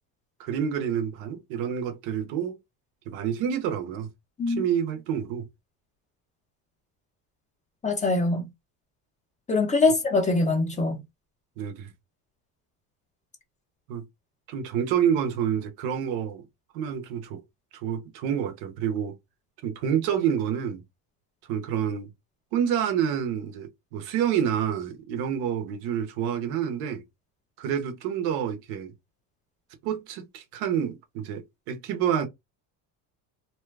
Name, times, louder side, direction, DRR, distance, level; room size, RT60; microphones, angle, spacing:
voice 1, 0.4-2.6 3.1-4.1 4.5-5.5 11.6-11.9 13.9-14.0 14.5-16.4 16.7-17.4 17.7-19.2 19.6-20.8 21.5-22.1 22.5-27.0 27.6-28.9 29.8-32.3, right 8 dB, 80° right, 0.9 m, -28 dB
voice 2, 7.8-8.5 9.5-11.0, left 3 dB, 20° left, 0.9 m, -23 dB
2.8 x 2.2 x 3.3 m
cardioid pair, 130°, 37 cm